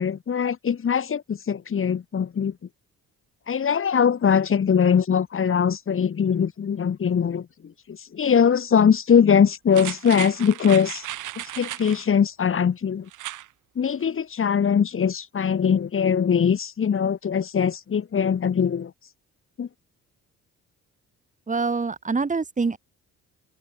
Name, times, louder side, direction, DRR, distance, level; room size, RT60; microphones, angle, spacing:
voice 1, 0.0-2.5 3.5-7.5 7.9-11.1 11.4-13.1 13.8-18.9 19.6-19.7, left 7 dB, 45° left, 2.3 m, -21 dB
sound 1, 9.7-12.1 13.1-13.5 13.9-14.0, right 14 dB, 85° right, 5.0 m, -35 dB
voice 2, 21.5-22.8, right 4 dB, 25° right, 2.2 m, -25 dB
cardioid pair, 90°, 30 cm